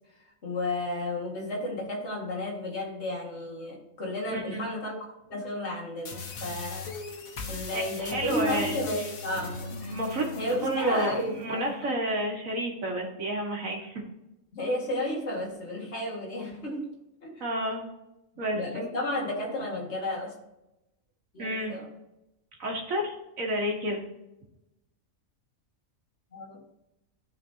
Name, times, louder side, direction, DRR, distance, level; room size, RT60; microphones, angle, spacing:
voice 1, 0.4-6.9 7.5-10.0 10.3-11.9 14.5-16.9 17.2-17.4 18.5-20.4 21.3-21.9 26.3-26.6, left 1 dB, 55° left, -2 dB, 2.2 m, -33 dB
voice 2, 4.3-4.7 7.7-8.8 9.9-14.0 17.4-17.9 18.4-18.9 21.4-21.7 22.6-24.0, right 1 dB, 75° right, 0 dB, 2.1 m, -30 dB
sound 1, 6.0-11.1, left 4 dB, 85° left, 1.6 m, -40 dB
sound 2, 9.0-12.2, left 2 dB, 35° left, 1.8 m, -43 dB
14.0 x 5.1 x 2.8 m, 0.92 s
omnidirectional pair, 1.4 m